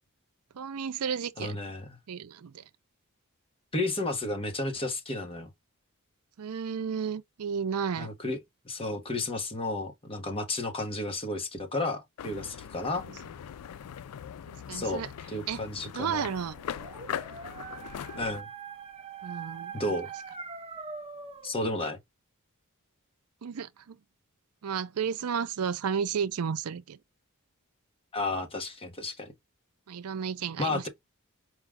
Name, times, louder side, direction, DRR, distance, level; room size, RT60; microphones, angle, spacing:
voice 1, 0.5-1.6 2.1-2.6 6.4-8.1 13.0-13.2 14.5-15.1 15.5-15.6 15.9-16.6 19.2-19.9 23.4-24.0 24.6-27.0 29.9-30.9, right 7 dB, 80° right, 0.5 m, -33 dB
voice 2, 1.4-1.8 3.7-5.5 8.0-8.4 8.6-13.1 14.7-16.3 18.2-18.5 19.7-20.1 21.4-22.0 28.1-29.3 30.6-30.9, left 2 dB, 25° left, 1.1 m, -32 dB
sound 1, 12.2-18.4, left 8 dB, 85° left, 0.4 m, -41 dB
Dog, 16.5-21.5, right 5 dB, 25° right, 0.7 m, -42 dB
4.8 x 2.3 x 3.5 m
head